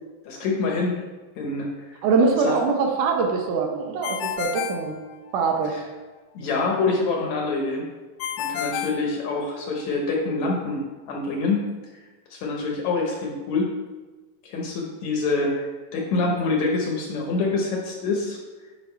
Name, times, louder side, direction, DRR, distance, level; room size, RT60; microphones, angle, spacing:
voice 1, 0.3-1.0 1.4-2.0 2.4-2.8 5.7-5.8 6.3-7.9 8.4-12.0 12.3-13.8 14.4-18.4, left 3 dB, 70° left, 0 dB, 2.0 m, -26 dB
voice 2, 2.0-4.9 5.3-5.7, right 4 dB, 75° right, 2 dB, 2.2 m, -23 dB
Ringtone, 4.0-5.7 8.2-9.8, left 9 dB, 90° left, 2.4 m, -31 dB
9.1 x 4.8 x 4.4 m, 1.3 s
omnidirectional pair, 3.9 m